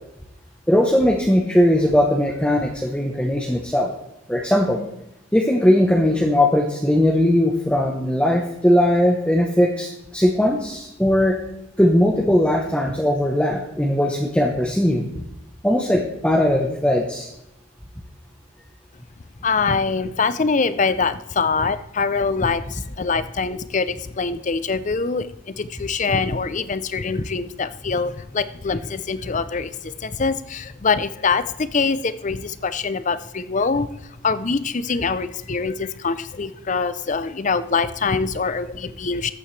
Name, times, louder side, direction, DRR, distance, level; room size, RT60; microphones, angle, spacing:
voice 1, 0.7-3.9 4.3-4.8 5.3-11.4 11.8-15.1 15.6-17.3, left 1 dB, 5° left, 0 dB, 0.8 m, -19 dB
voice 2, 19.4-33.9 34.2-39.3, left 4 dB, 35° left, 14 dB, 0.5 m, -24 dB
14.0 x 8.8 x 3.2 m, 0.87 s
head